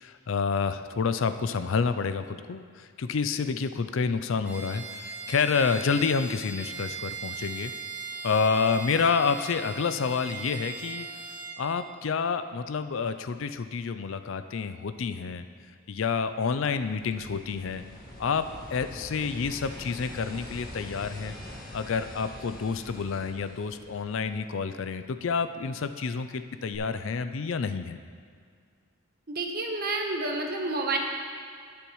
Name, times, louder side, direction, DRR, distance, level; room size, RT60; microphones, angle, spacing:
voice 1, 0.0-7.7 8.2-11.1 11.6-15.4 15.9-17.8 18.2-21.4 21.7-28.0, left 5 dB, 60° left, 10 dB, 0.4 m, -29 dB
Bowed string instrument, 4.4-11.6, right 5 dB, 5° right, 1.0 m, -39 dB
sound 1, 16.3-24.6 26.7-26.8, left 1 dB, 45° left, 1.7 m, -44 dB
voice 2, 29.3-31.0, right 2 dB, 45° right, 2 dB, 1.2 m, -29 dB
19.5 x 6.9 x 3.1 m, 2.1 s
head